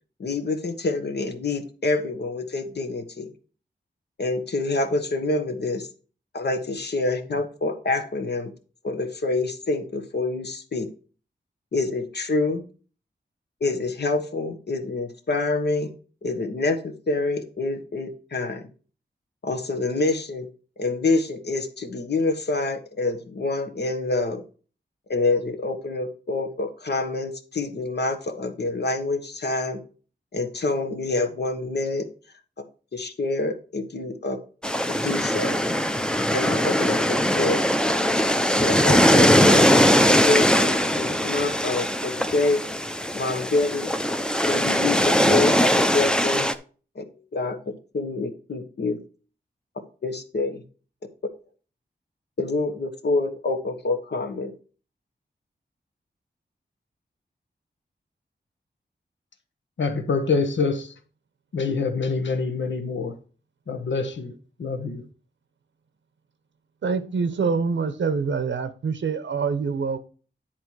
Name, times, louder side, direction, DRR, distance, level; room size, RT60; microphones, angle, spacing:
voice 1, 0.2-3.3 4.2-5.9 6.3-8.5 8.8-10.9 11.7-12.6 13.6-15.9 16.2-18.7 19.4-20.5 20.8-24.4 25.1-29.8 30.3-32.1 32.9-34.4 34.7-35.6 36.3-37.7 38.6-39.8 40.1-42.6 43.1-43.9 44.5-46.5 46.9-47.1 47.3-49.0 50.0-50.6 52.4-54.5, left 3 dB, 60° left, 1.3 m, -27 dB
sound 1, 34.6-46.5, equal, 5° left, 0.6 m, -20 dB
voice 2, 59.8-60.9 61.5-63.2 63.7-64.3 64.6-65.0, left 4 dB, 80° left, 1.3 m, -25 dB
voice 3, 66.8-70.0, right 5 dB, 80° right, 0.8 m, -25 dB
10.0 x 4.4 x 4.7 m
wide cardioid pair, 90°, 19 cm